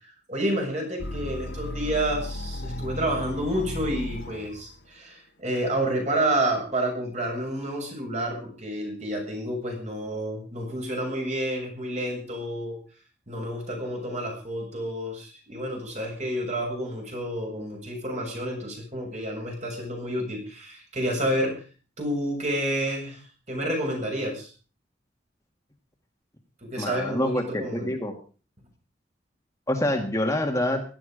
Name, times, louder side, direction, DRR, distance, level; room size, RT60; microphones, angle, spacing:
voice 1, 0.0-12.8 13.3-21.5 22.0-23.2 23.5-24.5 26.6-27.9, right 1 dB, 40° right, 1 dB, 7.1 m, -29 dB
sound 1, 1.0-4.8, left 1 dB, 65° left, 1.5 m, -34 dB
voice 2, 26.8-28.1 29.7-30.8, left 1 dB, 15° left, 3 dB, 1.8 m, -26 dB
17.0 x 12.5 x 5.1 m, 0.38 s
head